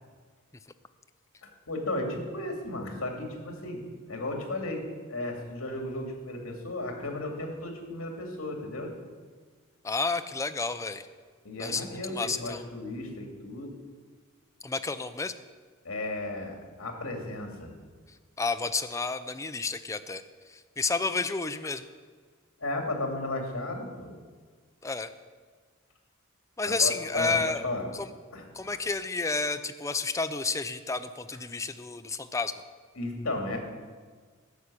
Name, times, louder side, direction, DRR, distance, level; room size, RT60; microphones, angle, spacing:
voice 1, 1.4-3.8 4.1-4.8 5.1-8.9 11.4-13.7 15.8-17.7 22.6-24.1 26.6-27.9 28.3-28.4 28.7-28.8 33.0-33.6, left 2 dB, 70° left, 3 dB, 2.4 m, -34 dB
voice 2, 9.8-11.1 11.6-12.6 14.6-15.3 18.4-20.2 20.5-21.9 24.8-25.1 26.6-27.6 27.9-28.1 28.5-32.5, left 4 dB, 15° left, 10 dB, 0.4 m, -30 dB
11.5 x 6.4 x 8.4 m, 1.5 s
head